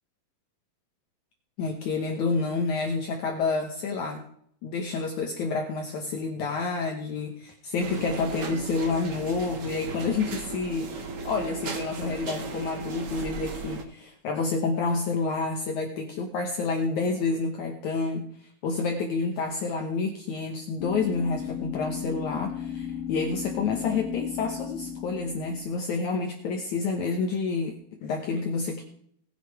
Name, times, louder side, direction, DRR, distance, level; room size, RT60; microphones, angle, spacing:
voice 1, 1.6-4.2 4.6-27.7 28.0-28.8, left 4 dB, 65° left, 2 dB, 2.2 m, -29 dB
sound 1, 7.8-13.8, right 4 dB, 70° right, 0.9 m, -36 dB
sound 2, 20.8-25.8, left 8 dB, 25° left, 1.3 m, -35 dB
19.5 x 6.5 x 4.7 m, 0.66 s
omnidirectional pair, 4.2 m